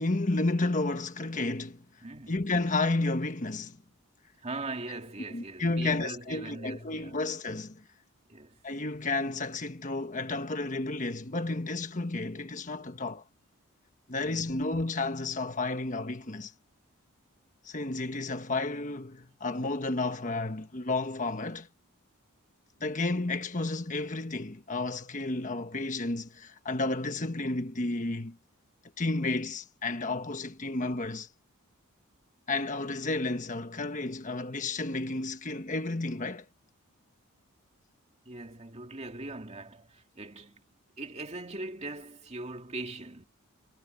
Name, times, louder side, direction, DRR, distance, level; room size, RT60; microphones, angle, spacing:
voice 1, 0.0-1.8 2.3-3.8 5.3-7.8 8.6-13.2 14.1-16.5 17.6-21.7 22.8-28.4 29.0-31.3 32.5-36.5, left 2 dB, 35° left, 1.3 m, -31 dB
voice 2, 2.0-2.4 4.4-7.2 8.3-8.6 14.2-14.5 38.2-40.6 41.0-43.2, right 2 dB, 30° right, 2.5 m, -40 dB
head